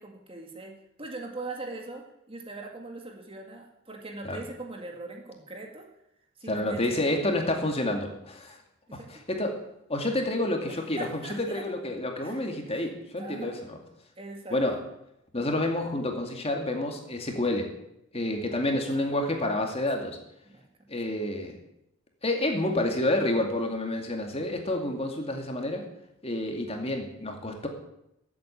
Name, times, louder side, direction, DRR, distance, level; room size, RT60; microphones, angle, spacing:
voice 1, 0.0-5.9 6.4-7.2 8.9-9.2 10.7-11.7 12.2-12.4 12.7-13.6 14.2-14.6 18.9-20.1 20.5-20.7, right 2 dB, 25° right, 2 dB, 1.9 m, -42 dB
voice 2, 6.5-8.6 8.9-9.6 9.9-13.8 14.5-14.8 15.3-17.7 18.1-20.2 20.9-21.6 22.2-25.9 26.2-27.7, left 1 dB, 30° left, 3 dB, 2.3 m, -29 dB
14.5 x 8.5 x 8.6 m, 0.81 s
head